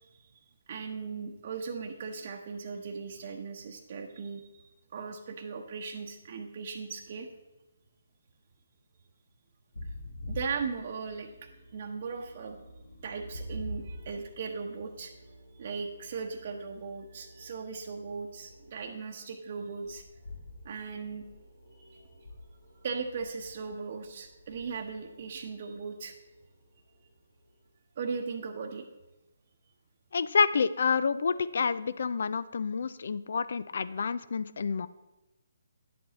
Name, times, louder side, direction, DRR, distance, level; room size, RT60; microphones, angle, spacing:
voice 1, 0.7-4.6 4.9-7.3 10.3-11.3 11.7-12.6 13.0-15.1 15.6-20.0 20.6-21.2 21.9-22.1 22.8-26.1 28.0-28.8, right 5 dB, 50° right, 2 dB, 0.9 m, -38 dB
sound 1, 9.7-18.9 19.8-27.4, equal, 85° left, 2.0 m, -47 dB
voice 2, 30.1-34.9, left 5 dB, 65° left, 16 dB, 0.5 m, -28 dB
10.5 x 7.7 x 4.1 m, 1.1 s
hypercardioid pair, 150°, 0 cm